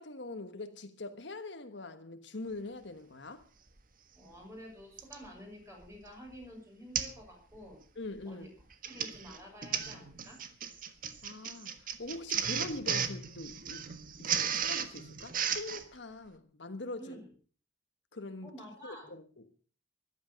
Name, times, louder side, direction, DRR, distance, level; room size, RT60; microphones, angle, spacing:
voice 1, 0.0-3.4 7.9-8.5 11.2-13.9 14.2-17.2 18.1-18.6 18.8-19.5, left 2 dB, 65° left, 1.4 m, -43 dB
Printer, 3.8-3.9 5.0-5.3 5.8-6.1 6.3-6.4 6.9-7.2 7.5-7.8 8.6-15.8, right 8 dB, 45° right, 1.5 m, -35 dB
voice 2, 4.1-7.8 8.3-8.5 8.8-10.4 17.0-17.3 18.4-19.1, equal, 15° right, 6.6 m, -49 dB
14.5 x 12.0 x 6.4 m
head